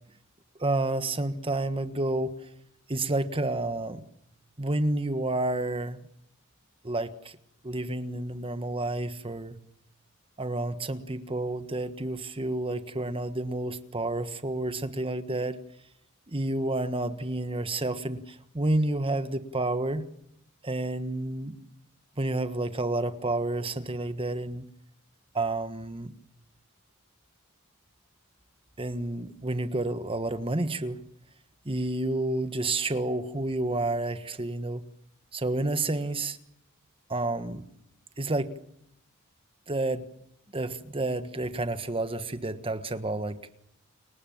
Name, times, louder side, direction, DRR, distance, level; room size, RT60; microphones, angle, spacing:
voice 1, 0.6-2.3 2.9-4.0 4.6-6.0 6.8-7.4 7.6-9.6 10.4-15.6 16.3-20.0 20.6-21.6 22.2-24.7 25.3-26.1 28.8-31.0 31.6-34.8 35.3-36.4 37.1-37.6 38.2-38.5 39.7-40.0 40.5-43.4, right 2 dB, 25° right, 10 dB, 1.4 m, -30 dB
30.0 x 23.0 x 7.3 m, 0.75 s
head